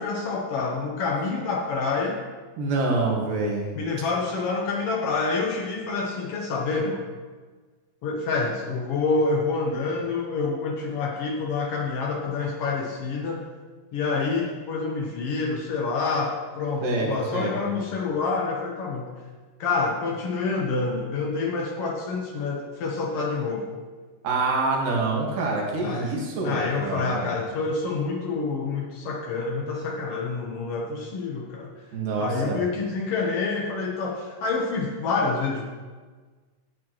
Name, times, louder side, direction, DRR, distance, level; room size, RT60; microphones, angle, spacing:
voice 1, 0.0-2.2 3.7-7.0 8.0-13.4 13.9-19.1 19.6-23.7 25.8-26.1 26.4-31.7 32.2-35.7, left 4 dB, 80° left, -1 dB, 1.3 m, -27 dB
voice 2, 2.6-3.7 16.8-17.7 24.2-27.3 31.9-32.6, right 3 dB, 65° right, -2 dB, 3.3 m, -26 dB
14.0 x 8.6 x 3.1 m, 1.4 s
omnidirectional pair, 4.2 m